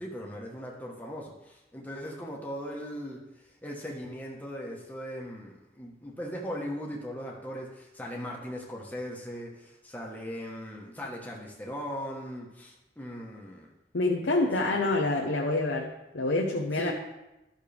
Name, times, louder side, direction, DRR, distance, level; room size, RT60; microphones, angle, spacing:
voice 1, 0.0-3.2 3.6-13.7 14.4-15.0 16.7-16.9, equal, 10° left, -2 dB, 1.3 m, -39 dB
voice 2, 13.9-16.9, left 2 dB, 90° left, 0 dB, 0.8 m, -27 dB
12.0 x 6.4 x 3.4 m, 0.99 s
head